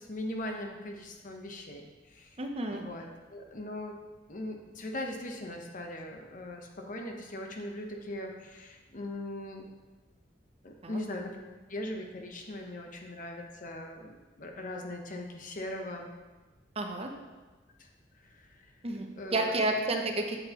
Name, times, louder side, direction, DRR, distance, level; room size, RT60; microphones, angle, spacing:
voice 1, 0.0-2.4 2.7-3.1 3.3-4.0 4.3-9.7 10.6-11.4 11.7-16.1 17.8-17.9 18.2-18.7 19.2-19.8, left 1 dB, 45° left, 2 dB, 0.9 m, -40 dB
voice 2, 2.4-2.8 10.8-11.0 16.8-17.1 18.8-20.4, right 2 dB, 35° right, 4 dB, 0.7 m, -31 dB
7.8 x 7.7 x 3.0 m, 1.2 s
head